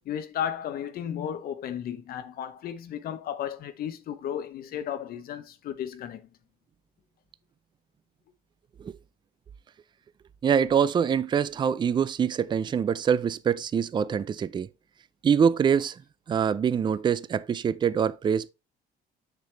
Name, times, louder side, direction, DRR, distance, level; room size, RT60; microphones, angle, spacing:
voice 1, 0.1-6.2, left 9 dB, 60° left, 0.8 m, -34 dB
voice 2, 10.4-14.7 15.2-16.0 16.3-18.5, right 7 dB, 25° right, 0.4 m, -24 dB
6.7 x 4.9 x 3.3 m
cardioid pair, 110°, 17 cm